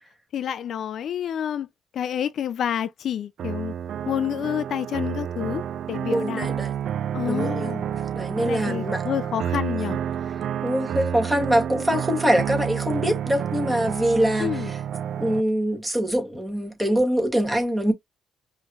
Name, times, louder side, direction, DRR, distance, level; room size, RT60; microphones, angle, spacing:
voice 1, 0.3-1.7 1.9-3.7 4.1-5.6 5.9-6.5 7.1-7.9 8.4-10.0 14.4-14.7, left 9 dB, 65° left, 0.4 m, -28 dB
sound 1, 3.4-15.4, right 9 dB, 65° right, 0.3 m, -29 dB
voice 2, 6.1-6.7 7.3-7.7 8.1-9.0 10.6-14.8 15.2-17.9, equal, 10° right, 2.0 m, -24 dB
5.2 x 3.1 x 2.3 m
cardioid pair, 90°, 0 cm